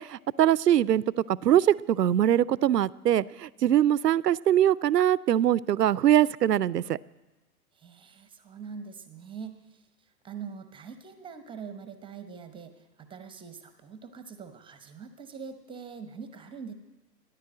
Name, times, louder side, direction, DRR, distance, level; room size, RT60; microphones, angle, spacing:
voice 1, 0.0-7.0, right 11 dB, 85° right, 21 dB, 0.6 m, -23 dB
voice 2, 7.7-16.7, right 6 dB, 10° right, 9 dB, 0.8 m, -43 dB
14.5 x 10.5 x 7.7 m, 1.1 s
figure-of-eight pair, 115°, 47 cm